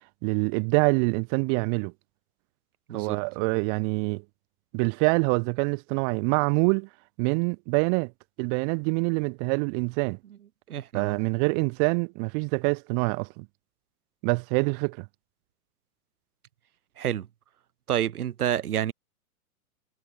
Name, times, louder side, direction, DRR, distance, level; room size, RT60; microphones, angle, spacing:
voice 1, 0.2-1.9 2.9-4.2 4.7-6.9 7.2-8.1 8.4-10.2 10.9-13.5 14.2-15.1, right 40 dB or more, 35° right, 2.2 m, -25 dB
voice 2, 10.7-11.2 17.0-17.3 17.9-18.9, right 10 dB, 75° right, 2.1 m, -28 dB
hypercardioid pair, 135°, 45 cm